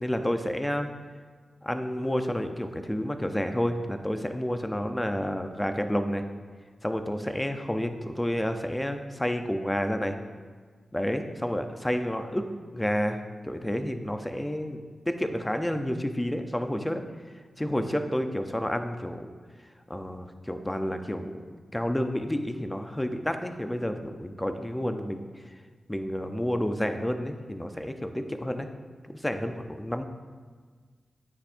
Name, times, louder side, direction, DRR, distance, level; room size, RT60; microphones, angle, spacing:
voice 1, 0.0-0.9 1.6-6.2 6.8-10.2 10.9-12.4 12.7-14.8 15.1-17.0 17.6-19.3 19.9-21.5 21.7-25.2 25.9-28.7 29.1-30.0, equal, 10° left, 7 dB, 0.6 m, -30 dB
8.8 x 8.3 x 2.6 m, 1.5 s
wide cardioid pair, 80°, 0 cm